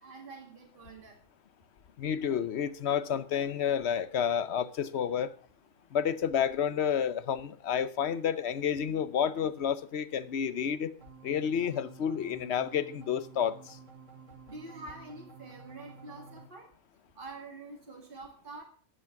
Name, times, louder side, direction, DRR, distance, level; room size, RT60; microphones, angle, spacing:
voice 1, 0.0-1.2 14.5-16.7 17.2-18.6, right 3 dB, 45° right, 2.3 m, -46 dB
voice 2, 2.0-5.3 5.9-10.9 11.2-13.8, left 8 dB, 60° left, 1.0 m, -30 dB
sound 1, 11.0-16.5, right 5 dB, 80° right, 1.8 m, -52 dB
11.5 x 10.5 x 5.8 m
omnidirectional pair, 1.3 m